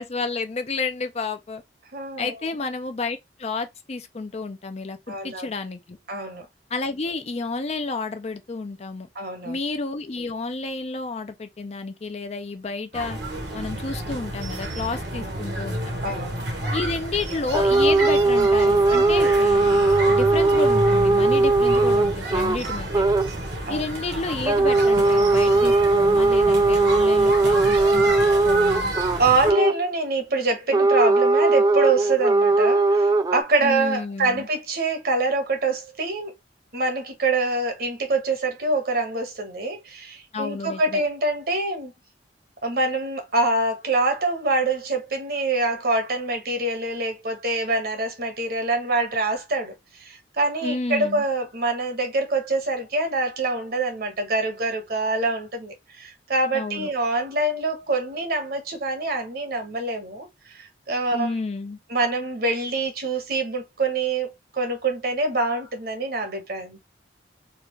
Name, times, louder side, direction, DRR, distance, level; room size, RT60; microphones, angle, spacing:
voice 1, 0.0-1.6 2.2-5.0 5.2-6.0 6.7-9.1 9.4-13.2 13.5-15.8 16.7-23.1 23.7-28.1 28.4-28.9 33.6-34.5 40.3-41.0 50.6-51.2 56.5-56.9 61.1-61.8, left 3 dB, 35° left, 0.5 m, -30 dB
voice 2, 1.9-2.3 5.1-5.5 6.1-6.4 9.1-9.6 15.1-15.4 16.0-16.3 23.7-23.8 29.2-36.3 36.7-41.9 42.6-49.7 50.0-60.3 60.5-61.3 61.9-66.8, right 2 dB, 55° right, 1.1 m, -25 dB
sound 1, 12.9-29.5, right 1 dB, 70° right, 1.2 m, -30 dB
sound 2, 17.5-22.6 22.9-23.3 24.5-29.8 30.7-33.4, right 3 dB, 20° right, 0.3 m, -19 dB
3.7 x 2.4 x 3.1 m
head